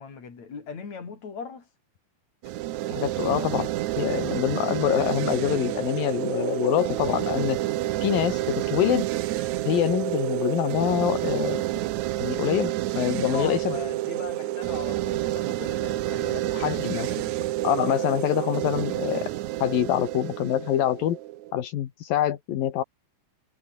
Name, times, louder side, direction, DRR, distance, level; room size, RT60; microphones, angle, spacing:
voice 1, 0.0-1.7 13.2-17.4, left 5 dB, 50° left, 5.6 m, -39 dB
sound 1, 2.4-21.5, right 15 dB, 70° right, 1.8 m, -29 dB
voice 2, 2.9-3.7 4.0-7.6 8.0-9.1 9.6-11.6 12.2-13.8 16.5-17.1 17.6-19.3 19.6-21.2 21.5-22.8, left 12 dB, 80° left, 3.4 m, -25 dB
omnidirectional pair, 4.1 m